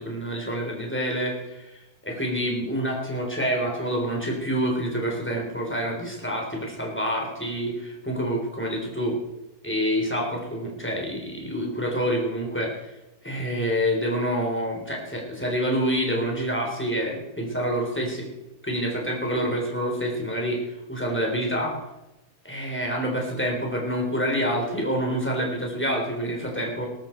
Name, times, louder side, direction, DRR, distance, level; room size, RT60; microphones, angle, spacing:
voice 1, 0.0-9.2 9.6-12.7 13.2-18.2 18.6-21.8 22.4-26.9, equal, 5° left, -1 dB, 3.7 m, -27 dB
19.0 x 13.0 x 4.5 m, 0.96 s
omnidirectional pair, 1.7 m